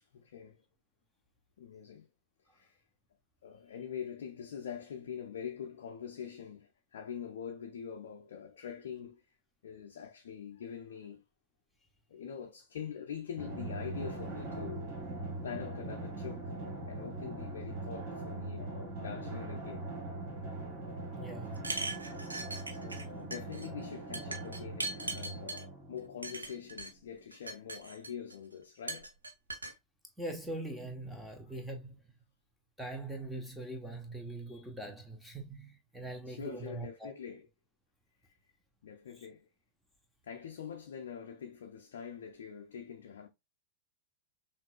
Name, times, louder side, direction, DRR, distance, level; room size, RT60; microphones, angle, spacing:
voice 1, 0.1-0.6 1.6-2.1 2.5-2.8 3.4-9.2 9.6-11.2 12.1-14.9 15.4-16.5 16.8-19.9 22.7-29.1 36.3-37.5 38.8-39.5 40.2-43.3, left 7 dB, 60° left, 0.6 m, -44 dB
Drum, 13.4-26.5, right 2 dB, 45° right, 2.0 m, -41 dB
voice 2, 21.2-21.7 30.2-32.0 32.8-37.1, right 2 dB, ahead, 1.2 m, -42 dB
sound 1, 21.6-23.1 23.3-23.7 24.1-25.6 26.2-26.9 27.3-28.3 28.9-29.7, right 3 dB, 80° right, 0.7 m, -39 dB
5.8 x 2.7 x 2.3 m
figure-of-eight pair, 90°, 0 cm